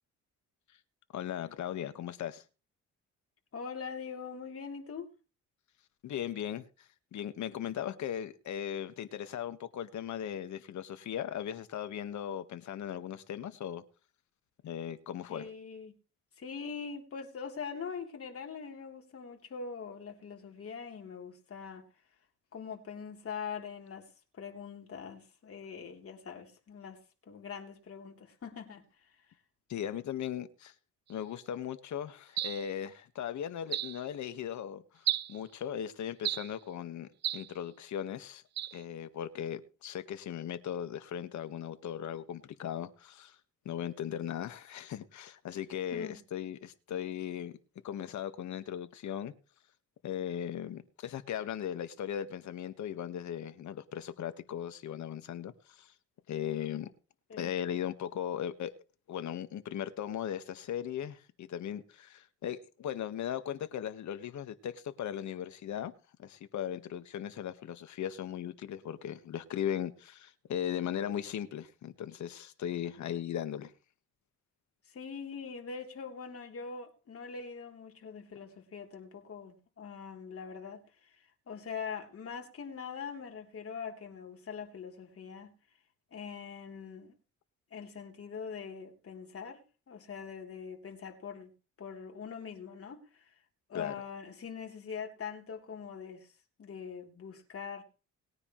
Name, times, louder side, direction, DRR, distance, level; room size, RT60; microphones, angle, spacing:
voice 1, 1.1-2.4 6.0-13.8 14.6-15.5 29.7-30.7 31.1-38.4 38.7-43.4 43.6-47.5 47.8-49.3 50.0-55.9 56.3-56.9 57.4-58.7 59.1-65.9 66.2-73.7 93.7-93.9, left 10 dB, 70° left, 1.6 m, -38 dB
voice 2, 3.5-5.1 15.3-15.9 16.4-21.9 22.5-27.0 27.3-29.1 45.9-46.2 57.3-57.5 74.9-85.5 86.1-87.1 87.7-91.5 91.8-93.4 93.7-96.3 96.6-97.8, left 6 dB, 50° left, 3.5 m, -43 dB
sound 1, 32.4-32.7 33.7-34.0 35.1-35.4 36.2-36.6 37.2-37.5 38.6-38.8, right 11 dB, 60° right, 0.8 m, -33 dB
20.5 x 9.7 x 3.2 m
cardioid pair, 90°, 30 cm